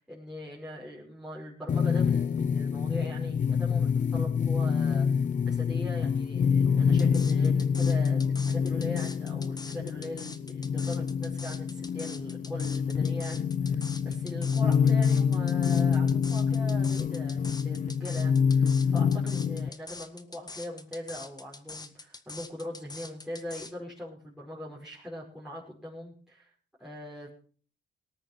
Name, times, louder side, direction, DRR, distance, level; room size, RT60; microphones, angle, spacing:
voice 1, 0.0-26.5 26.8-27.3, left 1 dB, ahead, -6 dB, 5.4 m, -41 dB
sound 1, 1.7-19.7, left 6 dB, 40° left, 0.7 m, -26 dB
sound 2, 7.0-23.7, left 3 dB, 20° left, 1.6 m, -44 dB
18.5 x 9.0 x 5.8 m, 0.42 s
cardioid pair, 90°, 20 cm